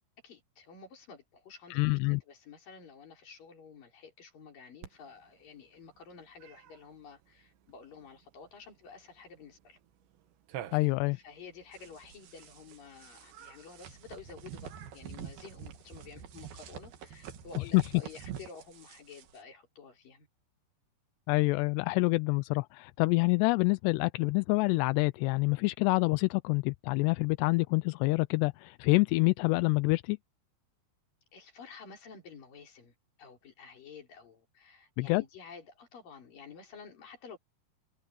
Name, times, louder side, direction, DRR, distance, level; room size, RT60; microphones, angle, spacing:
voice 1, 0.2-9.8 10.7-20.3 31.3-37.4, left 5 dB, 50° left, 5.9 m, -51 dB
voice 2, 1.7-2.2 10.7-11.2 17.7-17.8 21.3-30.2 35.0-35.2, left 25 dB, 85° left, 2.6 m, -27 dB
Cat, 4.8-18.5, right 11 dB, 80° right, 4.0 m, -54 dB
sound 1, 11.7-19.4, right 9 dB, 65° right, 3.5 m, -47 dB
omnidirectional pair, 5.1 m